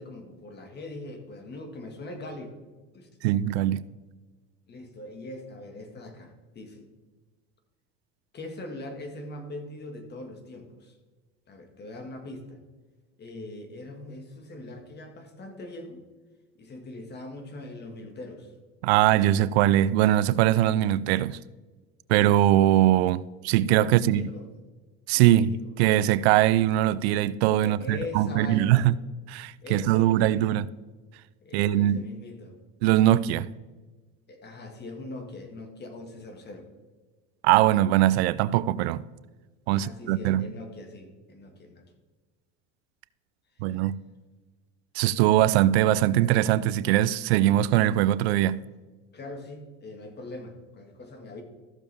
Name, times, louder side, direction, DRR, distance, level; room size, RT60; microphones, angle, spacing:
voice 1, 0.0-2.5 2.9-3.1 4.7-6.9 8.3-11.0 11.5-12.6 13.2-16.0 16.6-18.6 23.8-24.5 25.1-25.8 27.6-28.9 29.6-30.5 31.4-32.6 34.3-36.7 39.7-41.9 43.6-43.8 49.1-51.4, left 2 dB, 35° left, 2.0 m, -41 dB
voice 2, 3.2-3.8 18.8-21.4 22.1-24.3 25.1-28.9 29.3-30.7 31.5-32.1 32.8-33.5 37.4-39.1 39.7-40.5 43.6-44.0 45.0-48.6, right 13 dB, 90° right, 0.5 m, -22 dB
14.5 x 6.9 x 3.6 m
supercardioid pair, 110°, 31 cm